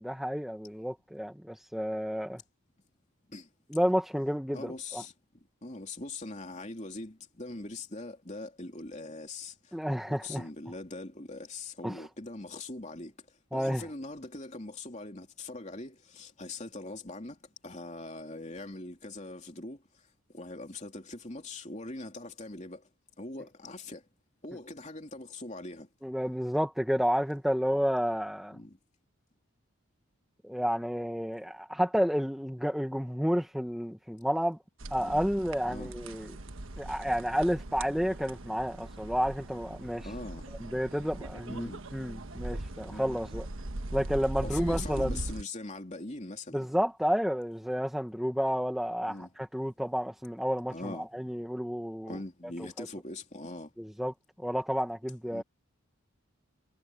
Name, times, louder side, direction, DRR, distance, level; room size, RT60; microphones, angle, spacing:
voice 1, 0.0-2.4 3.7-5.0 9.7-10.4 11.8-12.0 13.5-13.8 26.0-28.6 30.4-34.6 34.9-36.3 36.8-40.1 40.6-43.5 43.9-45.2 46.5-49.2 49.5-52.2 52.8-52.9 53.8-55.4, equal, ahead, 1.4 m, -31 dB
voice 2, 4.5-9.8 10.1-20.1 20.3-22.9 23.2-24.1 24.4-25.9 28.5-28.8 35.0-35.2 35.7-35.9 40.0-40.5 41.5-41.8 42.9-43.1 44.4-46.6 49.1-49.3 50.7-51.1 52.1-53.7 55.3-55.4, left 2 dB, 35° left, 3.1 m, -42 dB
sound 1, 34.8-45.4, right 1 dB, 70° right, 1.3 m, -40 dB
head